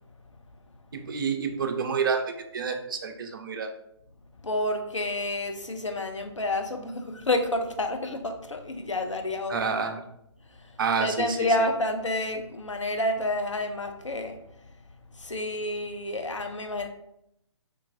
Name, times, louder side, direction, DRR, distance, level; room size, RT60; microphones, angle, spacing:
voice 1, 0.9-3.7 9.5-10.0 10.8-11.4, right 5 dB, 45° right, 5 dB, 0.4 m, -28 dB
voice 2, 4.4-9.6 10.5-14.4 15.1-16.9, left 1 dB, 85° left, 5 dB, 0.5 m, -29 dB
3.1 x 2.2 x 2.6 m, 0.77 s
figure-of-eight pair, 130°, 15 cm